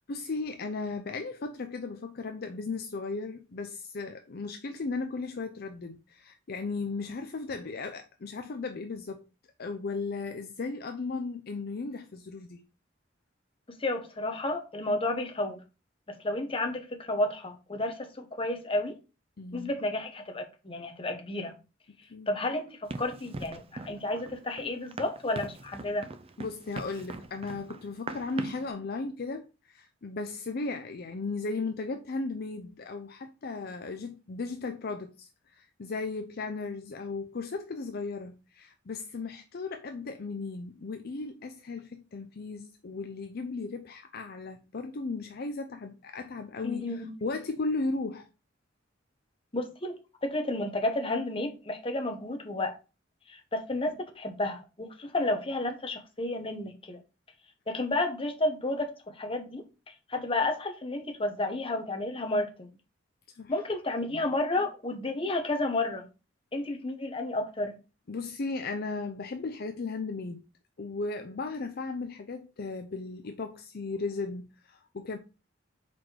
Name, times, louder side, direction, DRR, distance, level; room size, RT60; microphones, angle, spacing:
voice 1, 0.1-9.2 9.6-12.6 19.4-19.7 22.1-22.3 26.4-48.3 63.3-63.5 68.1-70.4 70.8-75.2, left 3 dB, 55° left, 0.5 m, -36 dB
voice 2, 13.7-15.6 16.2-19.0 19.5-21.6 22.3-26.1 46.6-47.1 49.5-52.8 53.3-57.0 57.7-62.7 63.5-66.1 66.5-67.8, left 2 dB, 30° left, 1.0 m, -31 dB
Run, 22.9-28.7, right 2 dB, 30° right, 0.5 m, -41 dB
4.8 x 4.3 x 4.6 m
head